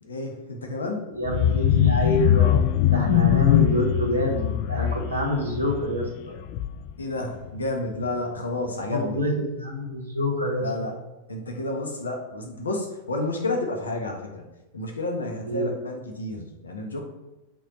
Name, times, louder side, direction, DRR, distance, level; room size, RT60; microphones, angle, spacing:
voice 1, 0.0-1.0 7.0-9.2 10.6-10.9 11.3-14.4 14.7-17.0, left 2 dB, 75° left, 2 dB, 1.4 m, -30 dB
voice 2, 1.2-2.6 2.8-6.3 8.9-10.7 15.4-15.8, equal, 80° right, -1 dB, 2.0 m, -26 dB
sound 1, 1.3-7.0 7.4-7.7 8.0-8.1, left 11 dB, 45° left, 0.3 m, -22 dB
6.1 x 4.4 x 5.6 m, 1.0 s
figure-of-eight pair, 90°, 0 cm